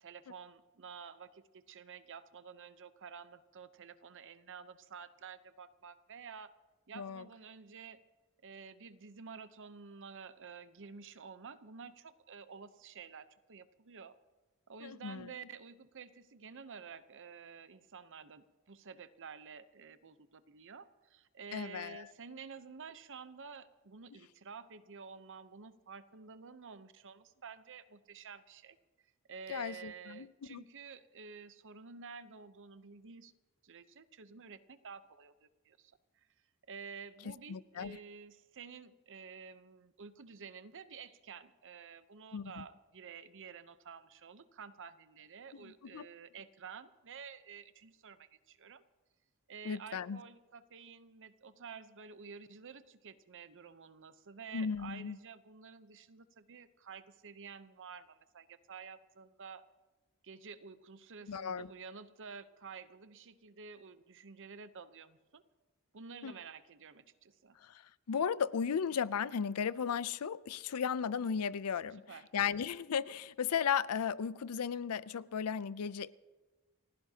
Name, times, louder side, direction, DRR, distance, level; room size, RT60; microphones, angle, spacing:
voice 1, 0.0-6.5 6.9-8.0 8.4-14.2 14.7-28.8 29.3-33.3 33.6-36.3 36.7-48.8 49.5-59.7 60.2-65.4 65.9-67.6 72.1-72.3, right 6 dB, 60° right, 0.8 m, -51 dB
voice 2, 14.8-15.3 21.5-22.1 29.5-30.6 37.5-38.0 42.3-42.6 45.6-46.1 49.6-50.2 54.5-55.2 61.3-61.7 66.2-66.3 67.6-67.8 68.1-72.0 72.3-76.1, left 7 dB, 90° left, 0.5 m, -35 dB
29.5 x 15.5 x 2.9 m
head